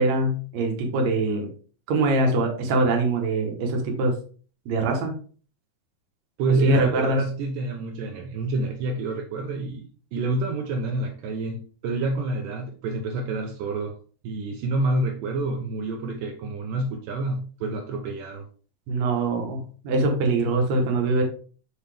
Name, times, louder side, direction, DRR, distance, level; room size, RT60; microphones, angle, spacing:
voice 1, 0.0-1.5 1.9-4.2 4.7-5.1 6.6-7.2 18.9-21.2, right 2 dB, 60° right, 2 dB, 2.1 m, -23 dB
voice 2, 6.4-14.0 14.2-18.5, right 2 dB, 75° right, 2 dB, 2.2 m, -28 dB
7.3 x 4.0 x 3.4 m, 0.41 s
omnidirectional pair, 4.0 m